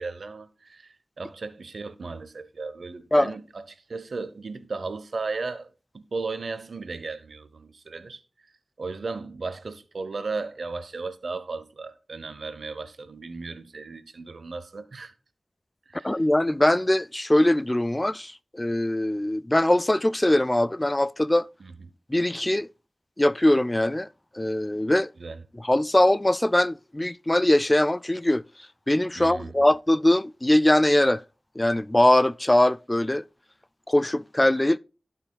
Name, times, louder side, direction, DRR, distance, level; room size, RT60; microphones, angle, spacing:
voice 1, 0.0-5.7 5.9-8.2 8.8-15.1 15.9-16.2 21.6-21.7 25.2-25.4 29.2-29.6, right 4 dB, 85° right, 0.8 m, -35 dB
voice 2, 16.0-21.5 22.1-22.7 23.2-24.1 24.3-25.1 25.6-28.4 28.9-31.2 31.6-33.2 33.9-34.8, left 1 dB, 25° left, 0.3 m, -21 dB
16.5 x 5.6 x 2.2 m
cardioid pair, 40°, 0 cm